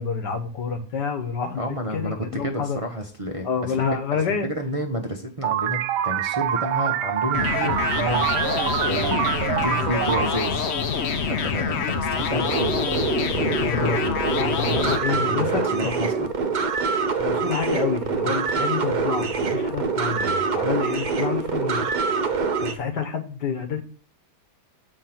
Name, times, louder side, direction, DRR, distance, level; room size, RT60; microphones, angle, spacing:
voice 1, 0.0-1.6 1.9-2.8 3.4-4.5 13.6-16.0 17.2-22.0 22.3-23.8, left 6 dB, 85° left, 8 dB, 1.8 m, -28 dB
voice 2, 1.6-3.7 4.1-10.7 11.3-12.7 14.7-16.3, equal, 25° right, 1 dB, 0.8 m, -30 dB
sound 1, 5.4-11.7, right 12 dB, 80° right, 1.2 m, -26 dB
sound 2, 7.3-15.0, left 6 dB, 50° left, 0.9 m, -26 dB
sound 3, 12.3-22.7, right 4 dB, 65° right, 0.4 m, -25 dB
7.3 x 4.7 x 6.0 m, 0.40 s
omnidirectional pair, 1.8 m